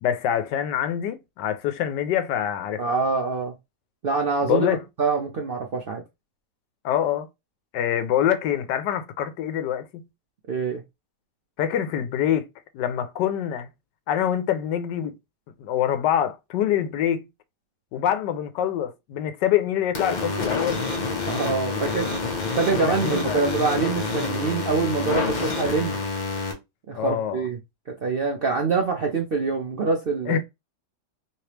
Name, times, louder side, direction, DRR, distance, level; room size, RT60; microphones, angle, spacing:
voice 1, 0.0-2.8 4.4-4.8 6.8-7.3 7.7-10.0 11.6-12.5 12.7-13.7 14.1-15.1 15.6-17.2 17.9-20.8 22.8-23.4 27.0-27.4 30.3-30.4, left 10 dB, 90° left, 1.3 m, -25 dB
voice 2, 2.8-3.5 4.0-6.0 10.5-10.8 21.3-22.1 22.6-26.0 26.9-27.6 28.0-30.4, right 4 dB, 75° right, 0.5 m, -25 dB
sound 1, 19.9-26.5, left 3 dB, 35° left, 0.7 m, -27 dB
3.2 x 3.2 x 2.9 m
omnidirectional pair, 1.8 m